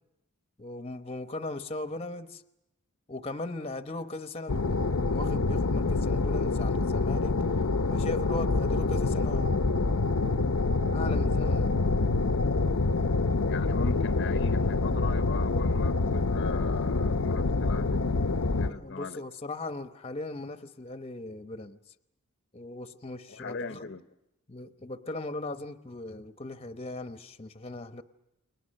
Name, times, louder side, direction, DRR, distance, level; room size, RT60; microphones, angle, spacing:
voice 1, 0.6-2.4 3.1-7.4 7.9-9.6 10.9-11.7 18.7-21.8 22.5-23.9 24.5-28.0, left 2 dB, 25° left, 0.9 m, -38 dB
sound 1, 4.5-18.7, left 3 dB, 85° left, 0.8 m, -26 dB
voice 2, 13.5-18.0 18.6-19.2 23.3-24.1, left 4 dB, 55° left, 0.8 m, -38 dB
29.5 x 22.0 x 6.5 m
head